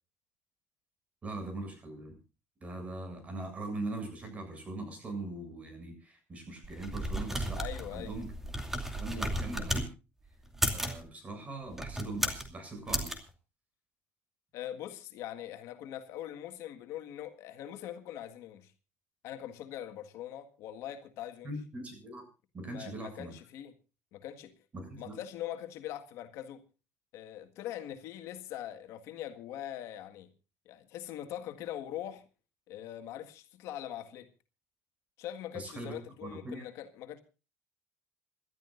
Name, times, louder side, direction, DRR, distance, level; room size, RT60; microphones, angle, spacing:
voice 1, 1.2-2.2 2.6-8.3 9.0-9.9 10.7-13.1 21.4-22.2 22.5-23.3 24.7-25.2 35.5-36.7, right 2 dB, 25° right, 7.5 m, -41 dB
sound 1, 6.6-9.9 10.5-11.0 11.7-12.5 12.9-13.2, right 1 dB, 5° right, 2.7 m, -34 dB
voice 2, 7.6-8.1 14.5-18.7 19.2-21.5 22.7-23.7 24.1-24.5 25.0-26.6 27.1-30.3 30.7-32.2 32.7-34.3 35.2-37.2, left 11 dB, 75° left, 1.7 m, -42 dB
27.5 x 12.5 x 2.6 m
cardioid pair, 125°, 5 cm